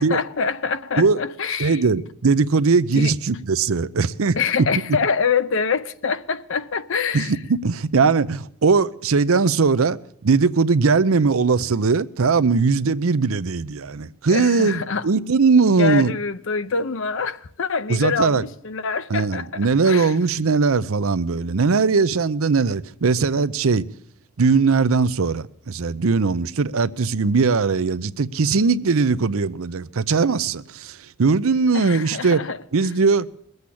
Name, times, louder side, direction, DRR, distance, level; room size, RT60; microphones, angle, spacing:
voice 1, 0.0-1.9 2.9-3.1 4.4-7.4 14.3-15.1 15.7-20.2 31.7-32.9, left 5 dB, 60° left, 0.6 m, -25 dB
voice 2, 1.6-4.4 7.1-7.2 7.5-10.0 10.2-16.1 17.9-18.4 19.1-23.9 24.4-32.4 32.7-33.3, right 4 dB, 70° right, 0.6 m, -20 dB
21.0 x 8.0 x 8.5 m
head